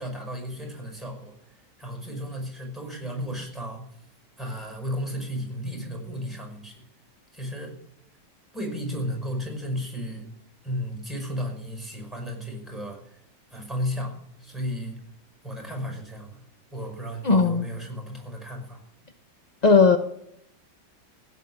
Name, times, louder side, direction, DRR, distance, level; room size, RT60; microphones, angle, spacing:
voice 1, 0.0-3.9 4.4-6.8 7.3-7.8 8.5-10.3 10.6-13.2 13.5-15.0 15.4-16.4 16.7-18.8, equal, ahead, 2 dB, 5.4 m, -34 dB
voice 2, 17.2-17.7 19.6-20.0, left 4 dB, 35° left, 6 dB, 0.6 m, -17 dB
16.0 x 8.3 x 9.9 m, 0.75 s
omnidirectional pair, 1.9 m